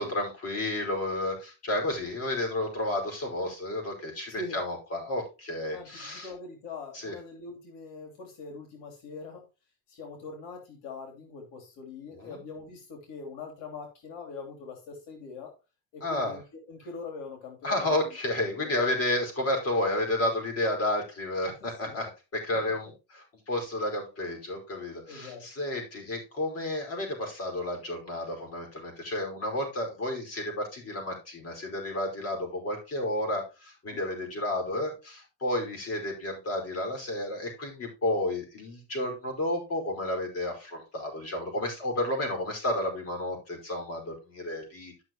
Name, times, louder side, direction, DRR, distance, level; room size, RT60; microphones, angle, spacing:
voice 1, 0.0-6.3 6.9-7.1 12.1-12.4 16.0-16.4 17.6-44.9, left 1 dB, 35° left, 2 dB, 5.1 m, -31 dB
voice 2, 4.3-4.6 5.7-9.4 9.9-15.5 15.9-17.9 18.6-18.7 21.4-22.0 25.1-25.4 33.9-34.0, left 4 dB, 80° left, 2 dB, 3.0 m, -43 dB
12.5 x 6.1 x 3.0 m, 0.28 s
cardioid pair, 115°, 41 cm